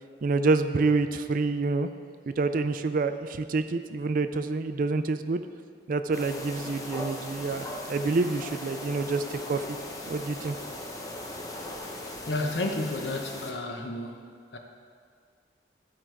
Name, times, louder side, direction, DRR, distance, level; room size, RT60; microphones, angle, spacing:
voice 1, 0.2-1.9 2.3-5.4 5.9-9.8 10.1-10.6, right 3 dB, 50° right, 10 dB, 0.4 m, -27 dB
sound 1, 6.1-13.5, left 1 dB, 20° left, 0.8 m, -39 dB
voice 2, 12.3-14.2 14.5-14.6, left 2 dB, 75° left, 3 dB, 0.9 m, -31 dB
12.5 x 4.8 x 4.5 m, 2.1 s
head